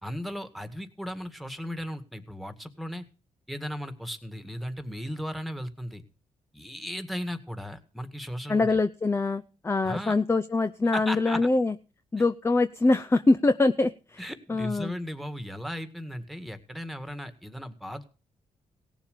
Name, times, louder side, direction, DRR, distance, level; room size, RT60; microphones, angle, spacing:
voice 1, 0.0-3.0 3.5-6.0 6.5-8.7 9.8-10.1 10.9-11.5 14.2-18.0, equal, ahead, 8 dB, 1.9 m, -36 dB
voice 2, 8.5-11.7 12.1-14.9, left 3 dB, 20° left, 10 dB, 0.6 m, -24 dB
17.5 x 7.2 x 6.7 m, 0.36 s
cardioid pair, 80°, 13 cm